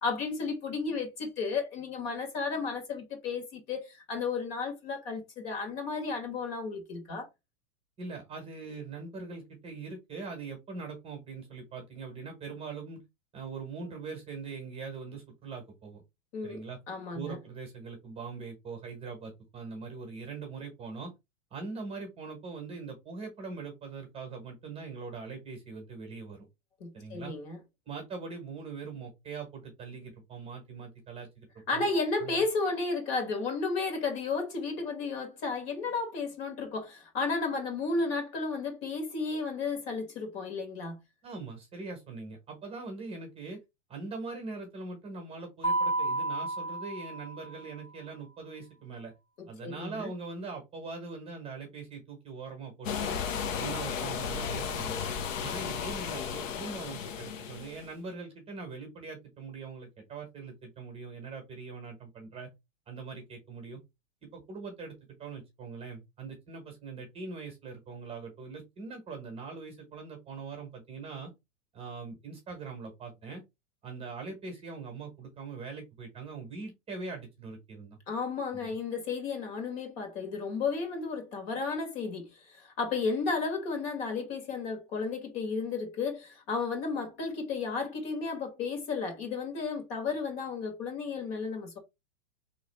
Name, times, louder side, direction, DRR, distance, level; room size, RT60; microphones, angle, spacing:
voice 1, 0.0-7.3 16.3-17.4 26.8-27.6 31.7-41.0 49.4-50.1 78.1-91.8, left 4 dB, 50° left, 1.9 m, -33 dB
voice 2, 8.0-13.0 13.3-16.0 16.4-16.8 17.1-21.1 21.5-26.5 26.9-27.3 27.9-31.9 32.2-32.5 41.2-43.6 43.9-49.1 49.5-53.2 53.6-55.0 55.4-62.5 62.9-63.8 64.3-71.3 71.7-73.4 73.8-78.0 78.5-78.7, right 4 dB, 15° right, 1.1 m, -42 dB
Mallet percussion, 45.6-47.7, right 2 dB, 15° left, 0.9 m, -31 dB
sound 1, 52.8-57.9, left 7 dB, 70° left, 0.9 m, -34 dB
3.5 x 3.2 x 3.3 m
supercardioid pair, 150°, 39 cm